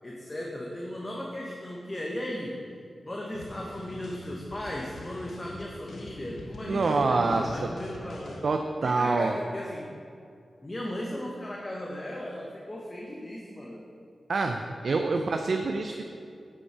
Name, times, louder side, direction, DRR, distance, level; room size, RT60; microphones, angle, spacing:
voice 1, 0.0-2.6 3.0-8.4 8.8-9.9 10.6-13.8, left 1 dB, 30° left, -3 dB, 1.0 m, -36 dB
sound 1, 3.3-8.5, left 2 dB, 85° left, 0.7 m, -44 dB
voice 2, 6.7-7.7 8.4-9.4 14.3-16.0, right 3 dB, 70° right, 5 dB, 0.4 m, -26 dB
8.5 x 5.4 x 4.7 m, 2.4 s
cardioid pair, 60°, 0 cm